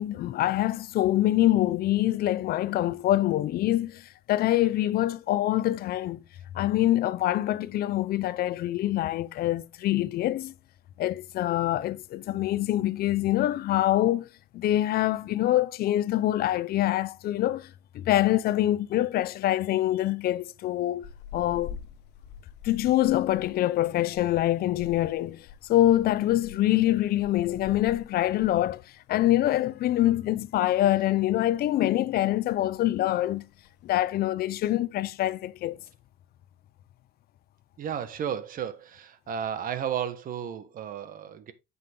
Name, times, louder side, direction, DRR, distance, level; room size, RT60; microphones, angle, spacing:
voice 1, 0.0-6.2 6.5-10.5 11.0-14.3 14.5-17.7 17.9-21.0 21.3-21.8 22.6-28.8 29.1-33.5 33.8-35.8, left 14 dB, 65° left, 0.6 m, -25 dB
sound 1, 21.0-29.6 29.8-30.0 30.4-31.3 31.6-32.0 32.2-32.3 32.5-32.9 33.5-34.0, left 7 dB, 90° left, 1.3 m, -47 dB
voice 2, 37.8-41.5, right 8 dB, 55° right, 1.3 m, -33 dB
9.2 x 5.6 x 3.6 m
cardioid pair, 110°, 17 cm